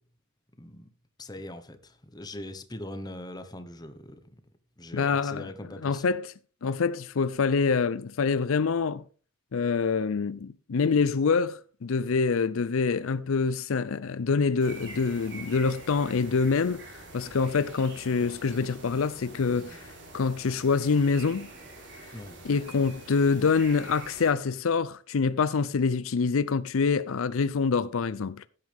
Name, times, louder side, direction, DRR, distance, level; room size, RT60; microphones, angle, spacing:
voice 1, 0.6-0.9 1.2-4.2 4.8-6.1 22.1-22.4, left 1 dB, 20° left, 1.1 m, -41 dB
voice 2, 4.9-5.5 5.8-6.3 6.6-9.0 9.5-16.9 17.1-19.9 20.1-21.5 22.4-28.4, left 5 dB, 75° left, 0.5 m, -26 dB
sound 1, 14.6-24.3, right 2 dB, 55° right, 4.0 m, -46 dB
15.5 x 9.8 x 3.5 m
head